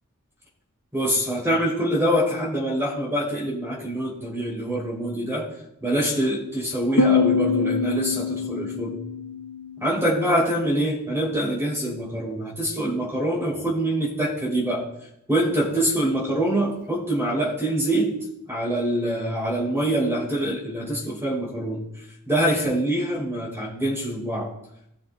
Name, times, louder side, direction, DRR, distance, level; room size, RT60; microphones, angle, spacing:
voice 1, 0.9-5.5 5.8-9.0 9.8-14.8 15.3-18.1 18.5-21.8 22.3-24.5, right 1 dB, 10° right, -5 dB, 3.0 m, -25 dB
Piano, 7.0-10.4, left 5 dB, 80° left, 0.9 m, -24 dB
18.5 x 6.6 x 2.2 m, 0.80 s
head